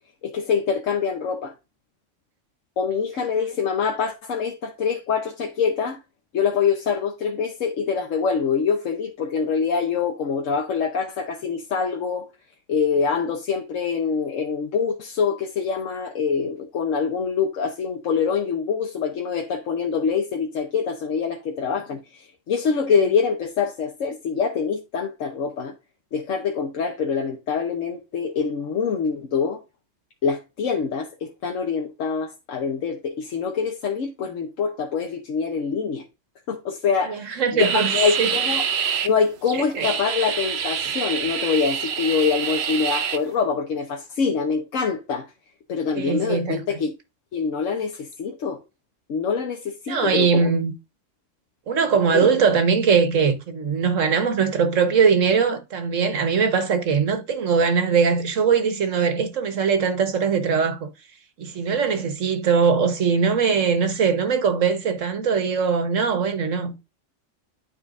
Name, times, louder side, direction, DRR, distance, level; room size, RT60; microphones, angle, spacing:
voice 1, 0.2-1.5 2.8-6.0 6.3-12.3 12.7-25.7 26.1-29.6 30.2-36.0 36.5-38.6 39.0-45.3 45.7-46.9 47.3-48.6 49.1-50.5 52.1-52.3, left 6 dB, 90° left, 1.3 m, -25 dB
voice 2, 37.1-38.3 39.7-39.9 45.9-46.8 49.9-50.7 51.7-60.9 61.4-66.8, right 6 dB, 85° right, 1.6 m, -21 dB
sound 1, 37.6-39.1 39.5-43.2, right 7 dB, 60° right, 1.0 m, -26 dB
12.0 x 4.3 x 2.5 m
omnidirectional pair, 1.3 m